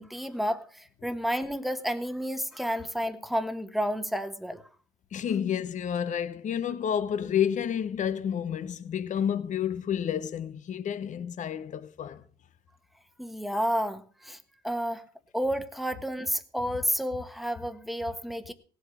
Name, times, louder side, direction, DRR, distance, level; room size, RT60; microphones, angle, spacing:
voice 1, 0.0-4.6 13.2-14.4 14.6-15.0 15.3-18.5, equal, ahead, 1.4 m, -31 dB
voice 2, 5.1-12.2, left 8 dB, 45° left, 1.0 m, -30 dB
17.5 x 8.1 x 6.4 m
cardioid pair, 110°, 17 cm